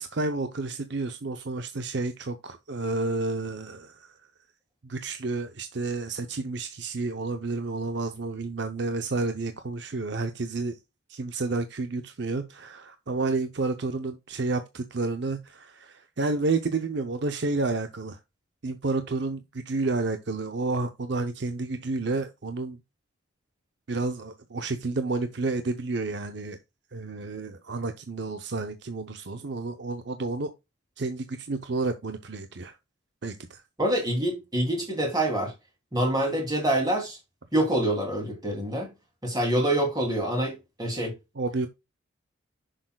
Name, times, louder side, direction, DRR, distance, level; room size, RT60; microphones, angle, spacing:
voice 1, 0.0-4.1 4.8-10.8 11.1-18.2 18.6-22.8 23.9-26.6 26.9-30.5 31.0-32.8 33.2-33.6 41.4-41.7, right 3 dB, 60° right, 0.6 m, -30 dB
voice 2, 33.8-35.5 35.9-37.2 37.5-38.9 39.2-41.1, right 1 dB, 20° right, 2.7 m, -26 dB
7.8 x 6.4 x 2.2 m
head